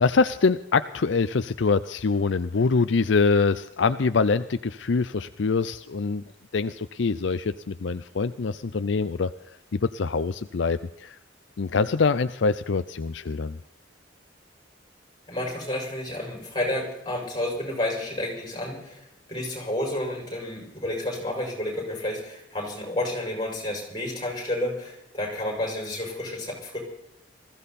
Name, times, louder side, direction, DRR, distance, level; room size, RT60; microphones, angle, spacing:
voice 1, 0.0-6.2 6.5-9.3 9.7-11.2 11.6-13.6, left 4 dB, 65° left, 12 dB, 0.5 m, -24 dB
voice 2, 15.3-19.0 19.3-26.8, left 1 dB, 20° left, -1 dB, 6.6 m, -30 dB
20.5 x 15.5 x 4.2 m, 0.79 s
head